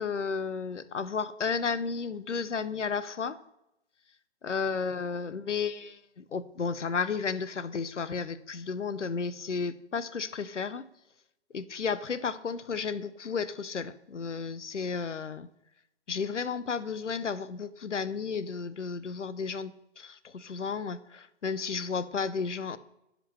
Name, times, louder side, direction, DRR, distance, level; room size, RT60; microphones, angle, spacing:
voice 1, 0.0-3.4 4.4-10.9 11.5-15.5 16.1-22.8, left 5 dB, 85° left, 16 dB, 0.6 m, -33 dB
15.0 x 5.2 x 3.0 m, 0.85 s
figure-of-eight pair, 115°, 35 cm